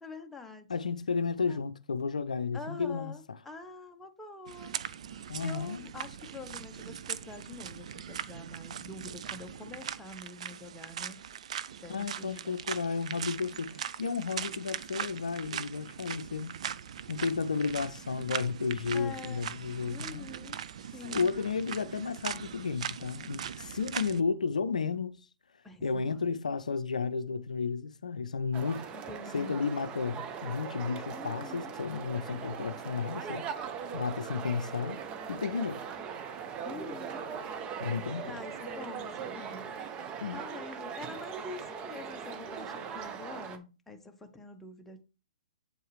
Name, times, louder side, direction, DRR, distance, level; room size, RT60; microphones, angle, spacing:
voice 1, 0.0-0.7 1.4-1.7 2.5-4.7 5.4-11.3 11.8-12.6 18.8-19.5 19.9-20.6 20.9-21.3 25.6-26.2 28.9-29.7 31.1-31.8 36.6-37.3 38.3-45.0, left 3 dB, 5° left, 0.9 m, -46 dB
voice 2, 0.7-3.1 5.3-5.9 11.9-16.6 17.1-20.3 21.0-25.3 25.8-28.9 29.3-33.5 33.9-35.0 35.3-35.8 37.8-38.3 40.2-40.4, left 5 dB, 80° left, 0.5 m, -33 dB
sound 1, 4.5-24.2, right 8 dB, 60° right, 0.5 m, -40 dB
sound 2, 28.5-43.6, right 7 dB, 25° right, 0.8 m, -40 dB
8.0 x 4.6 x 3.2 m
figure-of-eight pair, 120°, 4 cm